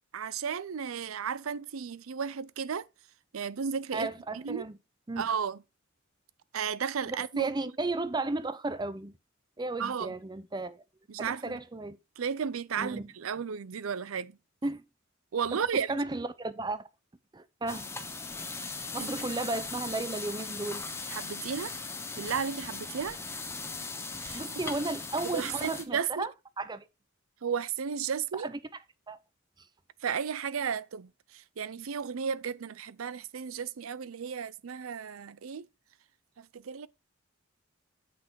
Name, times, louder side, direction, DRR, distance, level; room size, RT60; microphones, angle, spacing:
voice 1, 0.1-2.9 3.3-4.1 4.3-4.7 5.2-5.6 6.5-7.5 9.8-10.2 11.1-11.6 12.2-14.3 15.3-16.0 19.0-19.1 21.1-21.7 22.2-23.2 24.2-24.4 25.3-26.3 27.4-28.5 30.0-35.7 36.4-36.9, right 7 dB, 90° right, 0.5 m, -34 dB
voice 2, 3.9-4.8 5.1-5.3 7.1-9.1 9.6-10.8 11.2-12.0 12.8-13.1 14.6-14.8 15.5-16.8 17.3-17.9 18.3-18.5 18.9-20.8 24.3-26.3 26.6-26.8 28.3-28.6 29.1-29.2, right 2 dB, 20° right, 0.6 m, -34 dB
sound 1, 17.7-25.8, left 3 dB, 15° left, 1.0 m, -39 dB
8.5 x 5.9 x 4.6 m
head